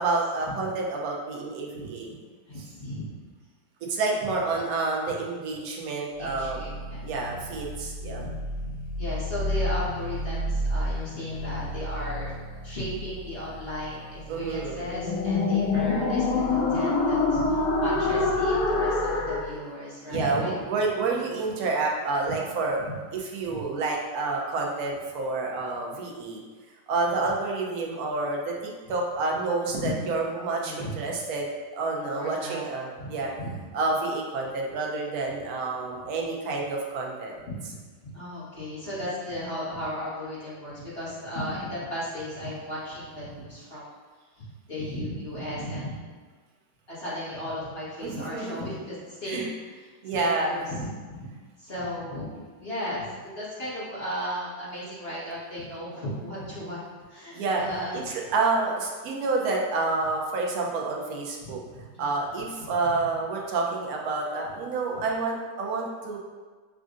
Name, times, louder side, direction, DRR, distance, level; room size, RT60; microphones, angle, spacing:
voice 1, 0.0-2.1 3.9-6.6 7.0-8.2 14.3-14.8 18.1-18.3 20.1-22.8 23.2-26.4 26.9-31.5 31.7-33.3 33.7-37.3 48.0-48.6 49.3-49.5 50.0-50.6 57.3-57.6 57.9-61.6 62.0-66.2, right 3 dB, 65° right, -1 dB, 1.0 m, -29 dB
voice 2, 2.5-3.2 6.2-7.4 8.2-8.3 8.6-8.7 9.0-12.3 12.6-20.5 23.4-23.6 29.8-29.9 30.6-31.1 32.2-32.6 33.0-33.6 37.4-37.5 38.0-43.9 44.4-46.2 46.9-49.8 50.1-51.3 51.6-52.3 52.6-56.8 57.1-57.9 61.4-62.1, equal, 35° left, -10 dB, 1.3 m, -35 dB
sound 1, 6.3-19.5, left 2 dB, 75° left, 0.8 m, -28 dB
6.1 x 2.4 x 2.5 m, 1.4 s
omnidirectional pair, 2.0 m